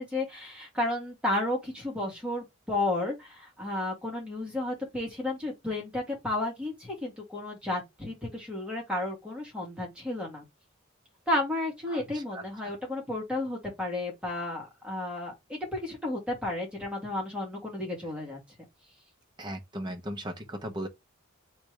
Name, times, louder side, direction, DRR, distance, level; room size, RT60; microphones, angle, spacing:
voice 1, 0.0-10.4 11.3-18.4, left 1 dB, 5° right, 1.8 m, -32 dB
voice 2, 11.9-12.4 19.4-20.9, right 1 dB, 20° right, 0.9 m, -37 dB
3.4 x 3.3 x 4.6 m
head